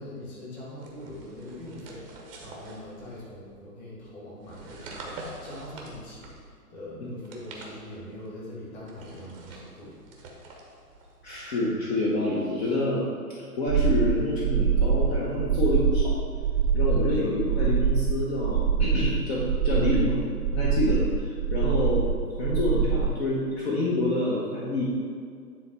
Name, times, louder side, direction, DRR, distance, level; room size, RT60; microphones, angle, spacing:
voice 1, 0.0-10.0 10.3-10.4, left 1 dB, 15° left, -5 dB, 1.5 m, -42 dB
sound 1, 0.8-3.5 4.4-6.6 7.1-8.3 8.8-11.7, right 2 dB, 20° right, 0.8 m, -46 dB
voice 2, 11.2-13.0 13.5-16.2 16.7-20.2 20.5-22.0 22.4-24.8, left 2 dB, 40° left, -5 dB, 1.1 m, -27 dB
sound 2, 13.7-23.1, right 6 dB, 50° right, 0.5 m, -25 dB
9.5 x 3.6 x 4.4 m, 2.2 s
hypercardioid pair, 135°, 48 cm